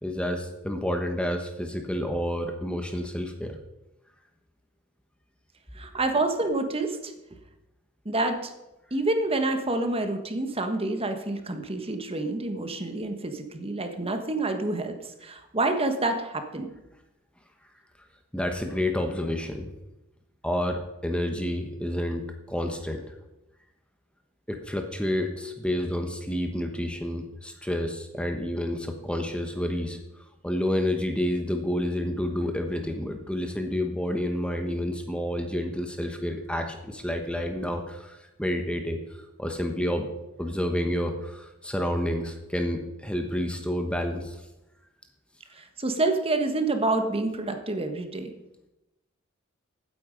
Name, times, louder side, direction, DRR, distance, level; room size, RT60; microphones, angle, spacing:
voice 1, 0.0-3.5 18.3-19.7 20.4-23.1 24.5-30.0 30.4-39.0 39.4-40.1 40.4-44.4, left 1 dB, 5° left, 5 dB, 1.1 m, -29 dB
voice 2, 5.7-7.1 8.0-8.5 8.9-16.7 45.5-48.3, right 2 dB, 25° right, 7 dB, 1.3 m, -28 dB
16.0 x 9.3 x 5.2 m, 0.97 s
head